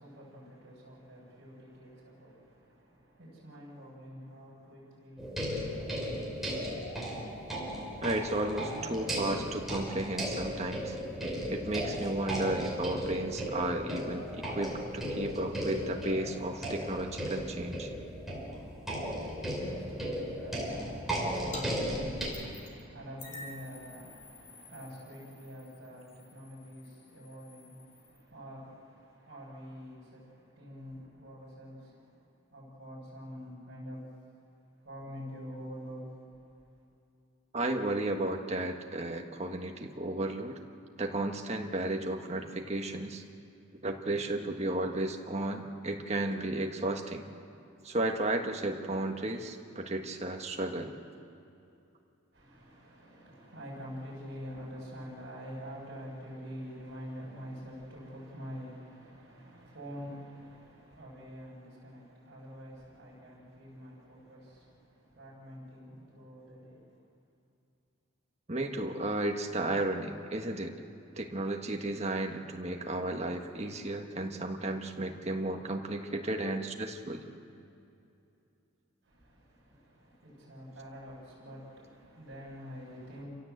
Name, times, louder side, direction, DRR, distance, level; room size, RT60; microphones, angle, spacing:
voice 1, 0.0-6.8 19.1-32.2 32.5-34.0 34.8-36.0 52.3-66.9 79.0-83.2, equal, 50° right, -7 dB, 6.7 m, -47 dB
sound 1, 5.2-22.3, equal, ahead, 4.9 m, -36 dB
voice 2, 8.0-10.9 11.5-17.9 37.5-40.5 41.0-43.2 43.8-47.2 47.8-50.9 68.5-70.7 71.1-77.2, right 2 dB, 30° right, 3 dB, 1.5 m, -33 dB
sound 2, 21.5-21.7 21.9-22.8 23.2-28.3, left 2 dB, 35° left, 3.3 m, -50 dB
28.5 x 17.0 x 8.0 m, 2.7 s
head